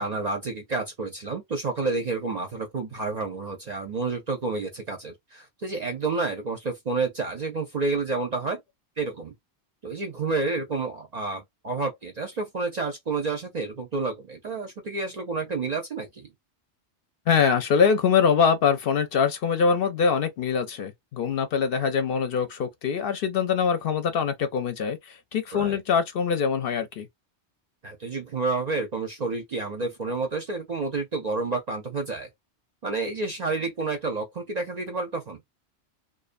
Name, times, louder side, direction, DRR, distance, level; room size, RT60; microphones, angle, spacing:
voice 1, 0.0-8.6 9.0-9.3 9.8-16.3 25.5-25.8 27.8-32.3 32.8-35.4, right 3 dB, 50° right, 0.5 m, -30 dB
voice 2, 17.3-27.1, left 6 dB, 65° left, 0.7 m, -23 dB
2.5 x 2.1 x 2.5 m
omnidirectional pair, 1.2 m